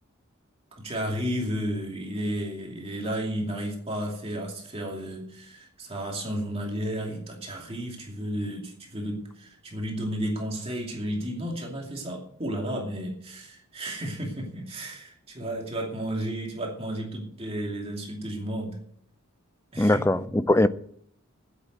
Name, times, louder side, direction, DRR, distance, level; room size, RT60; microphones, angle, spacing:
voice 1, 0.8-18.8 19.7-20.5, equal, 25° right, 2.6 m, -33 dB
voice 2, 19.8-20.7, left 1 dB, 10° left, 0.4 m, -21 dB
10.5 x 8.2 x 9.3 m
head